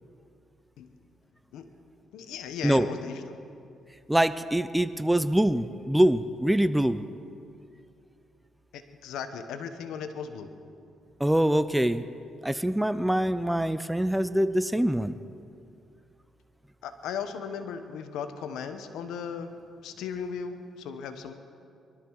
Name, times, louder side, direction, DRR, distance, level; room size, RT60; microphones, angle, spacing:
voice 1, 2.1-3.4 8.7-10.5 16.8-19.5 19.8-21.3, left 7 dB, 85° left, 8 dB, 1.1 m, -37 dB
voice 2, 4.1-7.0 11.2-12.0 12.4-15.1, right 1 dB, 5° right, 13 dB, 0.5 m, -24 dB
22.5 x 13.0 x 4.7 m, 2.5 s
cardioid pair, 90°, 0 cm